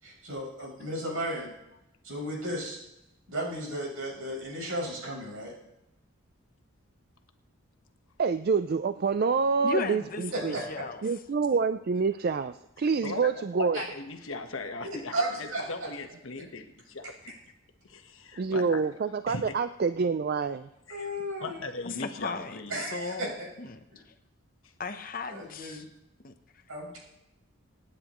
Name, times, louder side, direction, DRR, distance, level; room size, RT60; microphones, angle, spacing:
voice 1, 0.0-1.5 2.0-2.8 3.3-5.5 10.3-10.9 13.7-13.8 15.1-15.9 20.9-21.7 22.7-23.3 23.9-24.0 25.3-25.8 26.7-27.0, right 1 dB, 80° right, -3 dB, 6.2 m, -34 dB
voice 2, 8.2-10.6 11.0-13.8 18.4-20.7, right 5 dB, 45° right, 11 dB, 0.3 m, -27 dB
voice 3, 9.6-11.0 21.8-23.3 23.6-23.8 24.0-24.1 24.8-25.8 26.2-26.6, left 4 dB, 40° left, 8 dB, 0.8 m, -36 dB
voice 4, 12.8-17.1 17.8-18.8 19.3-19.6 20.9-21.1 21.4-22.7, left 3 dB, 70° left, 6 dB, 1.3 m, -38 dB
26.0 x 9.9 x 3.1 m, 0.89 s
head